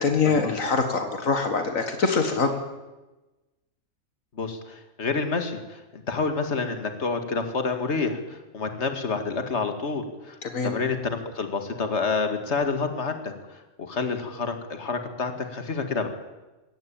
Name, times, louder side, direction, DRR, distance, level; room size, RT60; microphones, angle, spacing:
voice 1, 0.0-2.6 10.4-10.7, left 4 dB, 75° left, 6 dB, 2.1 m, -24 dB
voice 2, 4.4-10.4 10.6-13.6 13.9-16.1, left 4 dB, 55° left, 6 dB, 2.3 m, -28 dB
22.0 x 17.0 x 8.9 m, 1.1 s
omnidirectional pair, 1.4 m